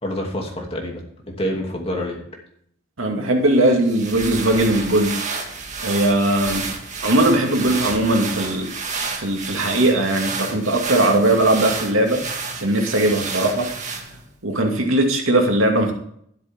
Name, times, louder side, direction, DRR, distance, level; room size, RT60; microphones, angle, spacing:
voice 1, 0.0-2.2, equal, 30° left, 0 dB, 2.7 m, -27 dB
voice 2, 3.0-5.3 5.8-6.7 7.0-8.7 9.1-12.2 12.5-13.7 14.4-15.9, right 1 dB, 75° right, 2 dB, 2.5 m, -19 dB
sound 1, 3.7-14.3, right 4 dB, 35° right, 2.0 m, -30 dB
12.5 x 11.5 x 3.7 m, 0.67 s
head